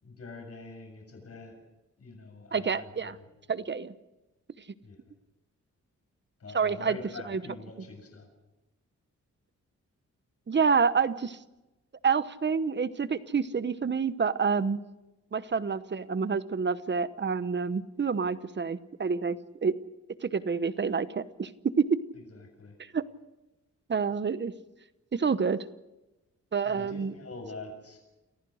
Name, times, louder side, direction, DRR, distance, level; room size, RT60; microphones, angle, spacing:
voice 1, 0.0-1.5 2.0-3.3 4.8-5.0 6.4-8.3 22.3-22.7 26.7-28.0, left 3 dB, 50° left, 3 dB, 7.1 m, -44 dB
voice 2, 2.5-3.2 3.5-3.9 6.5-7.0 7.3-7.4 10.5-11.4 12.0-14.8 15.3-19.7 20.2-21.5 21.8-21.9 22.9-23.0 23.9-24.5 25.1-25.6 26.5-27.1, right 5 dB, 35° right, 14 dB, 1.0 m, -28 dB
29.0 x 15.0 x 6.5 m, 1.0 s
cardioid pair, 90°, 30 cm